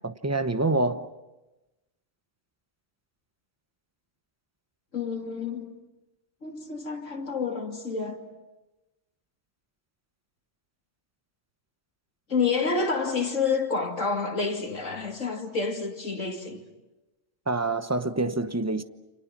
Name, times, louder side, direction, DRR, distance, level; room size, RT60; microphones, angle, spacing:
voice 1, 0.0-1.1 17.5-18.8, right 2 dB, 15° right, 0.9 m, -26 dB
voice 2, 4.9-5.7 6.4-8.2 12.3-16.6, left 4 dB, 75° left, 3.1 m, -29 dB
29.5 x 28.0 x 6.1 m
omnidirectional pair, 1.3 m